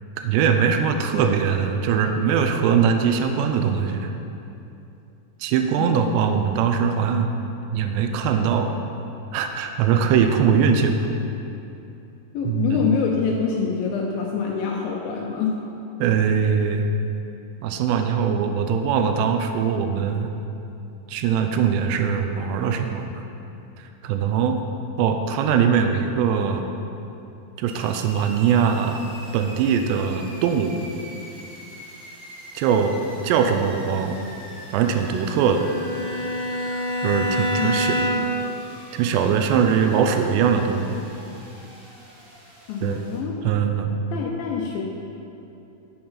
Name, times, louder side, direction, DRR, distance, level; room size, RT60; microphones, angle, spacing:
voice 1, 0.2-4.1 5.4-7.3 7.7-8.8 9.3-11.0 12.4-12.9 16.0-16.9 17.6-20.3 21.1-23.2 24.0-24.6 25.0-26.7 27.6-29.0 29.3-30.8 32.5-33.0 33.2-34.2 34.7-35.6 37.0-38.0 38.9-41.0 42.8-43.0 43.4-43.9, right 7 dB, 90° right, 5 dB, 2.8 m, -21 dB
voice 2, 12.3-15.6 37.6-38.3 42.7-43.4 44.1-44.8, left 6 dB, 90° left, 0 dB, 2.1 m, -26 dB
sound 1, 27.6-43.2, equal, 55° right, 1.1 m, -43 dB
Bowed string instrument, 35.4-38.5, equal, 70° left, 2.4 m, -26 dB
7.7 x 6.9 x 5.7 m, 2.8 s
omnidirectional pair, 4.9 m